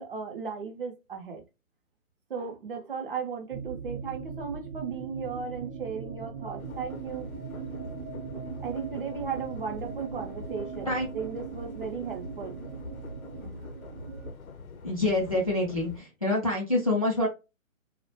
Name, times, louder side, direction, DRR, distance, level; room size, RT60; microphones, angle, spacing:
voice 1, 0.0-1.4 2.3-7.3 8.6-12.6 13.4-13.7, right 6 dB, 45° right, 3 dB, 0.5 m, -36 dB
sound 1, 3.5-14.3, right 6 dB, 80° right, 0.6 m, -39 dB
sound 2, 6.6-16.0, left 5 dB, 85° left, 0.6 m, -44 dB
voice 2, 14.8-17.3, left 2 dB, 30° left, -3 dB, 0.3 m, -26 dB
2.3 x 2.1 x 2.6 m, 0.25 s
figure-of-eight pair, 145°, 41 cm